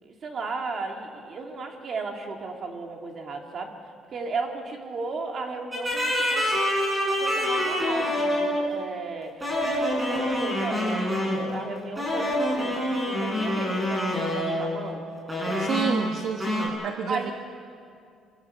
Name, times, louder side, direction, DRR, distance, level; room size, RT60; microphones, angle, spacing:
voice 1, 0.0-3.7 4.1-6.5 7.2-12.7 13.0-15.0 15.3-15.7 17.1-17.3, right 3 dB, 35° right, 2 dB, 2.7 m, -35 dB
sound 1, 5.7-8.6 9.4-11.5 12.0-14.8 15.3-16.1 16.4-16.7, left 1 dB, 10° right, 6.3 m, -26 dB
voice 2, 15.6-17.3, right 7 dB, 55° right, 5 dB, 1.1 m, -30 dB
26.5 x 25.0 x 7.0 m, 2.4 s
cardioid pair, 170°, 0 cm